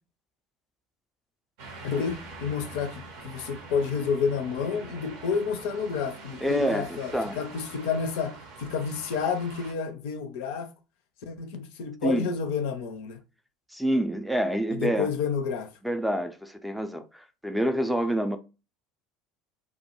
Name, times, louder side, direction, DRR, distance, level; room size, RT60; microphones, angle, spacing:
sound 1, 1.6-9.7, right 3 dB, 60° right, 0.6 m, -44 dB
voice 1, 1.8-10.7 11.2-13.2 14.7-15.7, left 6 dB, 65° left, 0.4 m, -30 dB
voice 2, 6.4-7.4 12.0-12.3 13.7-15.1 15.8-18.4, equal, ahead, 0.4 m, -27 dB
2.2 x 2.1 x 2.9 m
figure-of-eight pair, 70°, 0 cm